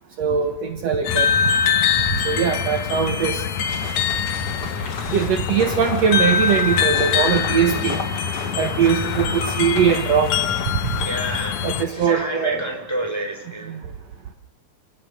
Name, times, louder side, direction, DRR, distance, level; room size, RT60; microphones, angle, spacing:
voice 1, 0.2-1.3 2.2-3.4 5.1-8.0 8.6-10.3 11.6-12.6 13.7-13.8, right 7 dB, 65° right, 5 dB, 1.6 m, -21 dB
sound 1, 1.0-11.8, left 7 dB, 70° left, 1.6 m, -23 dB
sound 2, 3.7-12.1, left 3 dB, 25° left, 2.9 m, -34 dB
voice 2, 11.0-11.7 12.0-13.8, right 1 dB, 5° right, 2 dB, 4.3 m, -28 dB
28.5 x 19.0 x 6.7 m, 0.85 s
omnidirectional pair, 4.8 m